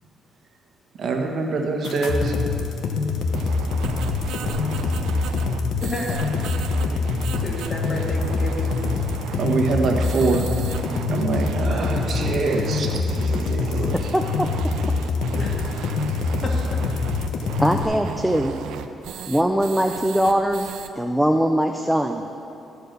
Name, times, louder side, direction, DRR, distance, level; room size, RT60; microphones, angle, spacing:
voice 1, 1.0-2.4 9.4-10.7 11.1-14.1 15.9-16.0, right 3 dB, 60° right, 2 dB, 1.3 m, -25 dB
sound 1, 1.8-17.8, left 4 dB, 80° left, 0.9 m, -25 dB
sound 2, 3.3-20.9, right 8 dB, 85° right, 0.5 m, -35 dB
voice 2, 5.8-6.3 6.9-7.0 7.3-8.8 9.3-9.4 11.3-11.4 11.7-12.4 15.4-15.8 16.4-17.1, left 1 dB, 35° left, -3 dB, 2.6 m, -33 dB
voice 3, 14.1-14.7 17.6-18.5 19.3-22.2, equal, 5° right, 4 dB, 0.5 m, -21 dB
14.5 x 4.9 x 6.6 m, 2.7 s
cardioid pair, 90°, 0 cm